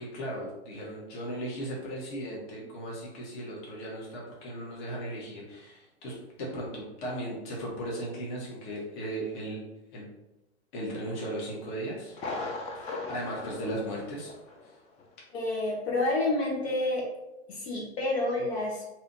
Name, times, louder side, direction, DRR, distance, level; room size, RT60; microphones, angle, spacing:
voice 1, 0.0-9.6 9.9-10.1 10.7-12.2 13.1-14.3 14.6-14.7, right 1 dB, 45° left, -3 dB, 1.4 m, -36 dB
Thunder, 12.1-14.7 15.0-15.1 15.6-15.7, left 3 dB, 20° left, 0.4 m, -38 dB
voice 2, 15.3-17.0 17.5-18.8, left 2 dB, 70° left, -2 dB, 1.4 m, -29 dB
3.0 x 3.0 x 3.9 m, 0.95 s
hypercardioid pair, 115°, 34 cm